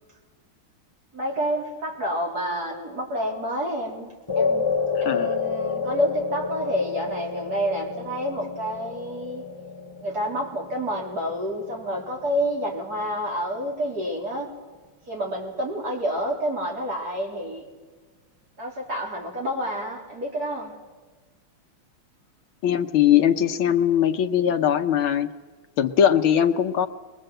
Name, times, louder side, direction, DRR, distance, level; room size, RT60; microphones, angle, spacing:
voice 1, 1.1-4.7 5.0-9.4 10.0-14.5 15.1-17.6 18.6-20.7, equal, 45° right, -1 dB, 4.3 m, -29 dB
sound 1, 4.3-12.8, left 5 dB, 25° left, 0.5 m, -29 dB
voice 2, 5.0-5.3 22.6-25.3 25.8-26.9, left 9 dB, 80° left, 7 dB, 1.8 m, -20 dB
22.5 x 22.0 x 7.9 m, 1.3 s
omnidirectional pair, 2.3 m